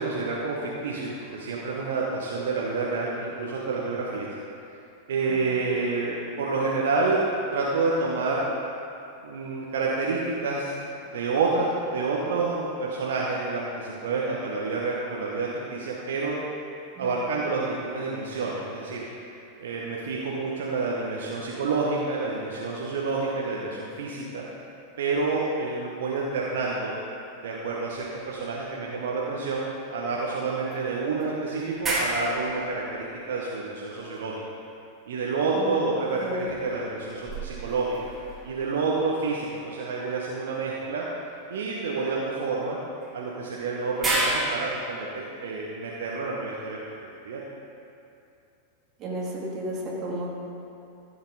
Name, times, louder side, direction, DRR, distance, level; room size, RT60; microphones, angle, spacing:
voice 1, 0.0-4.3 5.1-8.5 9.2-10.7 11.1-16.4 17.0-19.0 19.6-24.5 25.0-26.9 27.4-29.6 29.9-34.4 35.1-38.0 38.4-41.1 41.5-42.8 43.1-47.4, right 3 dB, 60° right, -4 dB, 1.1 m, -28 dB
sound 1, 29.6-29.7 30.7-34.2 35.9-39.0 40.7-40.9 43.0-44.3, right 2 dB, 15° right, 2.6 m, -34 dB
voice 2, 35.5-36.4 49.0-50.3, right 1 dB, 35° right, -3 dB, 2.4 m, -33 dB
14.5 x 7.8 x 3.9 m, 2.7 s
figure-of-eight pair, 90°, 0 cm